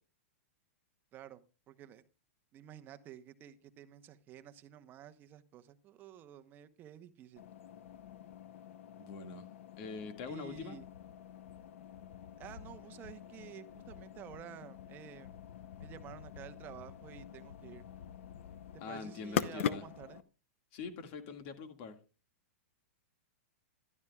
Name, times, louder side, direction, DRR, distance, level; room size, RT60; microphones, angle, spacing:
voice 1, 1.1-2.0 2.5-7.4 10.3-10.9 12.4-15.4 15.8-17.8 18.9-20.2, right 11 dB, 25° right, 0.9 m, -51 dB
sound 1, 7.4-20.2, left 9 dB, 65° left, 0.8 m, -44 dB
voice 2, 9.0-9.5 9.8-10.8 18.8-19.8 20.7-22.0, left 5 dB, 45° left, 1.9 m, -44 dB
13.0 x 12.0 x 2.3 m
hypercardioid pair, 150°, 7 cm